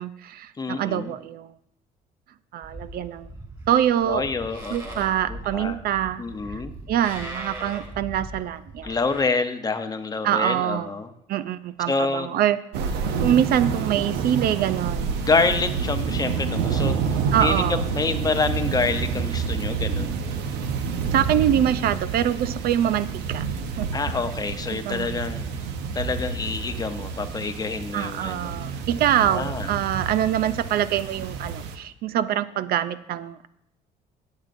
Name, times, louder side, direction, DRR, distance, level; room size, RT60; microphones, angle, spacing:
voice 1, 0.0-1.5 2.5-3.3 3.7-4.2 4.7-6.2 6.9-9.0 10.2-10.9 11.3-12.6 13.2-15.1 17.3-17.8 21.1-23.5 23.8-23.9 24.7-25.2 27.9-33.5, right 10 dB, 65° right, 13 dB, 0.4 m, -24 dB
voice 2, 0.6-1.1 4.1-5.8 6.2-6.7 8.8-11.1 11.9-12.4 15.2-17.0 17.4-20.2 23.9-25.4 25.9-28.5 29.2-29.7, left 4 dB, 20° left, 8 dB, 0.7 m, -27 dB
Livestock farm animals working animals, 2.6-9.2, right 1 dB, 25° right, 2.8 m, -39 dB
sound 1, 12.7-31.8, right 6 dB, 85° right, 0.9 m, -28 dB
17.0 x 7.3 x 2.6 m, 0.78 s
cardioid pair, 110°, 17 cm